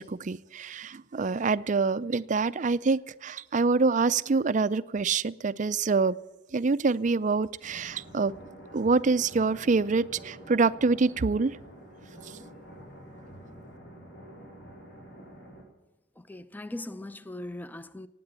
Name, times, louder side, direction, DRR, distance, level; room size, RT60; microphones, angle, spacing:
voice 1, 0.0-6.2 6.5-8.3 8.7-11.6 12.2-12.4, right 4 dB, 40° right, 0.5 m, -26 dB
sound 1, 7.6-15.6, right 1 dB, 60° left, 5.1 m, -48 dB
voice 2, 16.2-18.1, left 1 dB, 10° left, 0.6 m, -39 dB
18.0 x 8.5 x 8.8 m
head